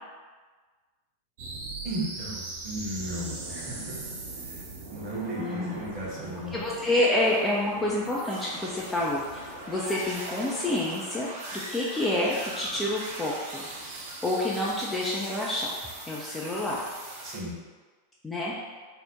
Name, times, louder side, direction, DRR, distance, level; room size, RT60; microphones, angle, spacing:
sound 1, 1.4-17.4, right 2 dB, 55° right, 0.6 m, -40 dB
voice 1, 1.8-4.1 4.4-6.6 17.2-17.5, right 1 dB, 30° right, -6 dB, 1.1 m, -36 dB
voice 2, 5.4-5.8 6.5-11.3 11.5-13.7 14.2-15.7 16.1-16.8 18.2-18.7, left 1 dB, 10° left, -5 dB, 0.4 m, -28 dB
2.8 x 2.1 x 3.5 m, 1.4 s
figure-of-eight pair, 90°, 0 cm